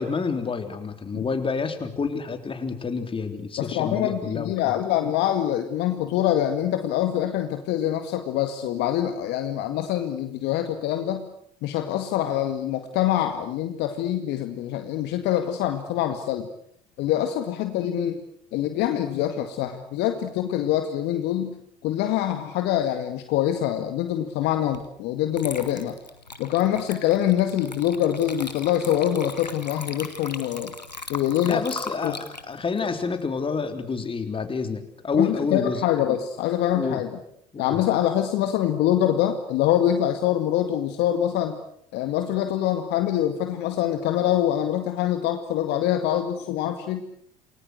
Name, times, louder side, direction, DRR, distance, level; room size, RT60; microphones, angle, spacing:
voice 1, 0.0-4.7 31.4-36.2 36.7-37.0 37.5-37.8, left 5 dB, 25° left, 7 dB, 3.8 m, -28 dB
voice 2, 3.6-11.3 11.6-16.5 17.0-18.2 18.5-21.6 21.8-26.0 26.4-30.7 31.1-31.6 32.0-32.2 35.1-37.1 37.6-41.6 41.9-47.0, left 11 dB, 55° left, 7 dB, 2.0 m, -25 dB
Water / Liquid, 24.7-24.9 25.3-33.9, left 3 dB, 90° left, 1.7 m, -39 dB
29.0 x 20.0 x 7.9 m, 0.70 s
figure-of-eight pair, 60°, 21 cm